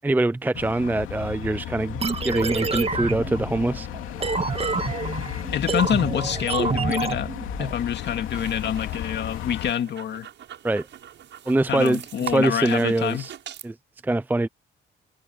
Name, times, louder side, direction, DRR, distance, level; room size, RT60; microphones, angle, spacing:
voice 1, 0.0-3.9 10.6-10.9 11.5-12.0 12.3-13.3 13.6-13.7 14.0-14.5, right 2 dB, 10° right, 0.5 m, -23 dB
sound 1, 0.5-9.7, left 13 dB, 85° left, 2.8 m, -34 dB
sound 2, 2.0-7.7, right 4 dB, 30° right, 2.1 m, -28 dB
voice 2, 5.5-7.3 7.6-10.3 11.7-13.3, left 9 dB, 60° left, 2.3 m, -26 dB
sound 3, 7.9-13.7, right 10 dB, 70° right, 7.6 m, -42 dB
cardioid pair, 90°, 20 cm